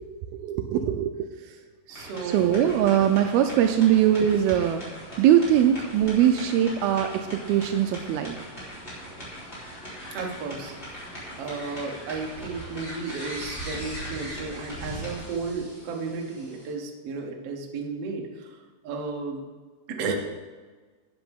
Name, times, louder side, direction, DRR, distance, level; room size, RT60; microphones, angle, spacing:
voice 1, 0.3-1.1 2.2-4.8 5.2-8.4, right 10 dB, 80° right, 7 dB, 2.3 m, -21 dB
sound 1, 1.9-16.7, equal, 15° left, 3.2 m, -40 dB
voice 2, 1.9-2.7 10.1-11.0 11.4-19.4 19.9-20.1, right 4 dB, 65° right, 1 dB, 1.5 m, -34 dB
12.0 x 8.8 x 3.6 m, 1.4 s
omnidirectional pair, 4.7 m